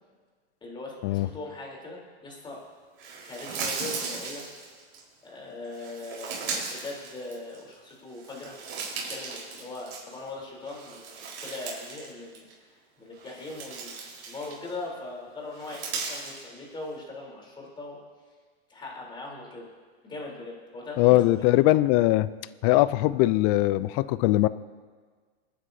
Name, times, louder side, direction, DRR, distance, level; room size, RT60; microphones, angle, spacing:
voice 1, 0.6-2.6 3.2-4.4 5.2-8.6 8.9-18.0 18.7-19.7 20.0-21.2, left 2 dB, 15° left, -3 dB, 3.5 m, -40 dB
sound 1, 3.0-5.0 5.7-7.7 8.1-10.3 10.6-12.1 12.4-12.5 13.1-14.8 15.5-16.4, right 5 dB, 40° right, 4.4 m, -37 dB
voice 2, 21.0-22.3 22.6-24.5, left 17 dB, 35° left, 16 dB, 0.4 m, -21 dB
28.5 x 9.7 x 2.7 m, 1.6 s
hypercardioid pair, 130°, 32 cm